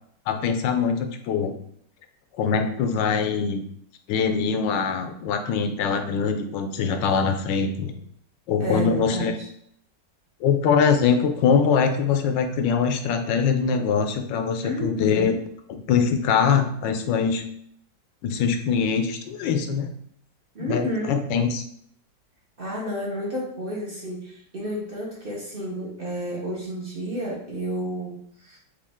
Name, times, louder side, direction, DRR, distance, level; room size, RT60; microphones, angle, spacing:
voice 1, 0.3-1.5 2.4-3.6 4.1-8.0 8.5-9.3 10.4-15.3 15.7-17.4 18.2-19.9 20.6-21.6, left 6 dB, 85° left, 7 dB, 1.3 m, -23 dB
voice 2, 8.6-9.3 14.6-15.3 20.5-21.2 22.6-28.6, right 1 dB, 35° right, -4 dB, 1.1 m, -31 dB
5.2 x 2.7 x 3.5 m, 0.67 s
omnidirectional pair, 1.9 m